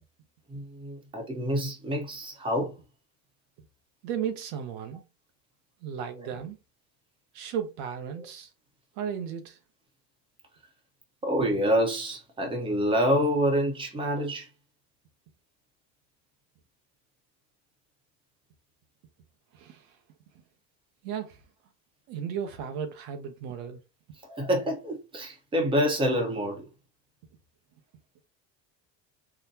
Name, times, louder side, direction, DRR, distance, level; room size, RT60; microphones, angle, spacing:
voice 1, 0.5-2.7 6.2-6.3 11.2-14.5 24.3-26.6, equal, 15° right, 0.9 m, -27 dB
voice 2, 4.0-5.0 5.8-6.6 7.3-8.5 9.0-9.6 19.5-19.9 21.0-21.4 22.1-23.8, right 8 dB, 80° right, 0.9 m, -35 dB
3.9 x 2.2 x 2.7 m
cardioid pair, 145°, 34 cm